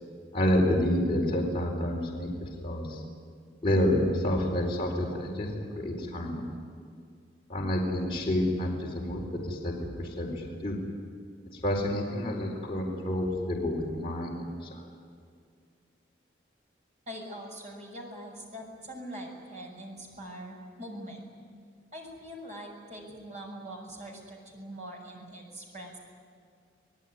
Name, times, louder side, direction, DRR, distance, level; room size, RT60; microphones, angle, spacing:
voice 1, 0.3-3.0 3.6-6.5 7.5-10.8 11.5-14.8, left 1 dB, 30° left, -3 dB, 4.5 m, -29 dB
voice 2, 17.1-21.3 21.9-26.0, equal, 40° right, 0 dB, 6.3 m, -43 dB
28.0 x 18.5 x 9.7 m, 2.2 s
head